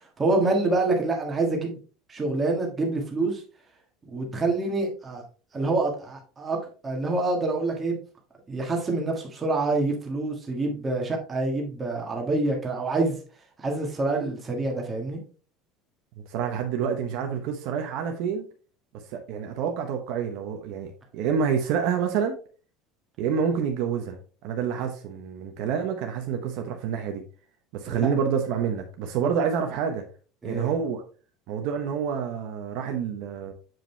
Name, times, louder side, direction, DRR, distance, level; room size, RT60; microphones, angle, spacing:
voice 1, 0.2-1.8 2.1-3.4 4.1-5.2 5.5-6.6 6.8-8.0 8.5-13.2 13.6-15.2 27.9-28.1 30.4-30.7, right 2 dB, 15° right, 1.5 m, -26 dB
voice 2, 16.3-18.5 19.1-22.4 23.2-27.2 27.7-30.0 30.4-31.0 31.5-33.5, right 7 dB, 55° right, 0.9 m, -28 dB
7.5 x 5.1 x 3.2 m
cardioid pair, 180°, 0 cm